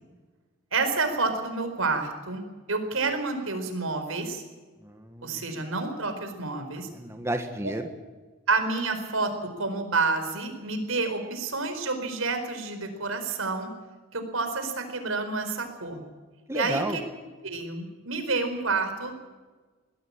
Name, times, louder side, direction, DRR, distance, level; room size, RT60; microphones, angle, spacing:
voice 1, 0.7-4.4 5.2-6.9 7.6-7.7 8.5-9.3 9.6-13.7 14.1-16.0 16.5-17.0 17.4-19.1, right 3 dB, 80° right, 7 dB, 4.7 m, -29 dB
voice 2, 4.8-5.7 6.9-7.9 16.5-17.0, right 1 dB, 10° right, 5 dB, 1.4 m, -32 dB
22.0 x 16.5 x 8.7 m, 1.3 s
head